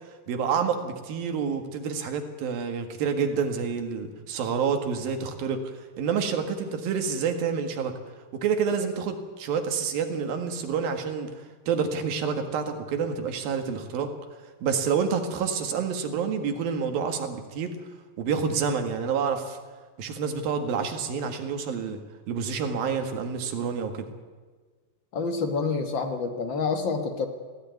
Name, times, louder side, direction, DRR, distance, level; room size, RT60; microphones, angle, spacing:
voice 1, 0.3-7.9 8.3-11.3 11.7-14.1 14.6-17.8 18.2-19.6 20.0-22.0 22.3-24.1, right 6 dB, 90° right, 6 dB, 3.5 m, -28 dB
voice 2, 25.1-27.3, left 4 dB, 50° left, 6 dB, 1.5 m, -27 dB
19.5 x 15.5 x 9.3 m, 1.4 s
omnidirectional pair, 4.0 m